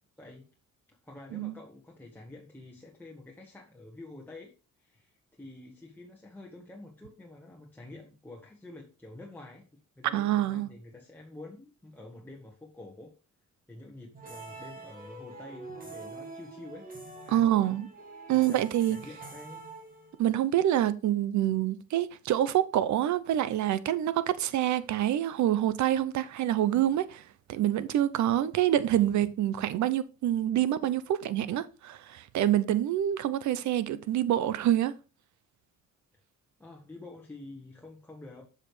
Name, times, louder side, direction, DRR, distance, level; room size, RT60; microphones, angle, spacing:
voice 1, 0.9-4.5 4.8-13.1 13.7-16.9 17.2-17.8 18.3-19.6 36.6-38.4, left 2 dB, 5° left, 1.4 m, -48 dB
voice 2, 10.1-10.7 17.3-17.9 18.3-19.0 20.2-27.2 27.5-34.9, right 12 dB, 70° right, 0.7 m, -26 dB
sound 1, 14.1-20.4, right 3 dB, 30° right, 2.2 m, -46 dB
7.4 x 6.6 x 3.2 m
cardioid pair, 90°, 30 cm